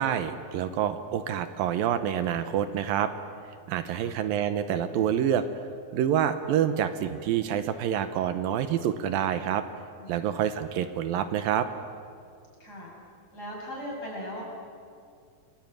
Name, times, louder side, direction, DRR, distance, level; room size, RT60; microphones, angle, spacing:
voice 1, 0.0-3.1 3.7-5.4 5.9-9.6 10.1-11.7, right 9 dB, 80° right, 10 dB, 2.7 m, -27 dB
voice 2, 12.6-12.9 13.3-14.4, equal, 25° left, -3 dB, 7.6 m, -38 dB
29.5 x 21.0 x 9.2 m, 2.3 s
omnidirectional pair, 4.2 m